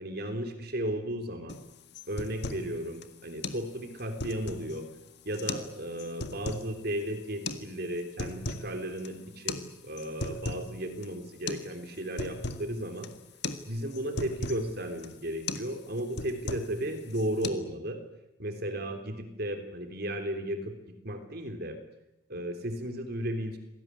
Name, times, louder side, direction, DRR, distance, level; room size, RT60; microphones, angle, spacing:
voice 1, 0.0-1.6 2.1-4.9 5.3-13.1 13.7-18.0 18.4-20.7 21.0-21.8 22.3-23.6, right 1 dB, 50° right, 7 dB, 3.5 m, -35 dB
sound 1, 1.5-1.6 1.9-2.7 3.0-3.1 3.4-3.6 4.0-4.8 5.3-5.7 6.0-6.7 7.4-7.6 8.0-8.7 9.0-9.1 9.5-9.6 10.0-10.7 11.0-11.1 11.5-11.7 11.9-12.7 13.0-13.2 13.4-13.6 13.9-14.6 15.0-15.2 15.5-15.7 16.0-16.8 17.1-17.5, left 3 dB, 55° left, 1.9 m, -36 dB
26.5 x 18.0 x 9.8 m, 0.95 s
head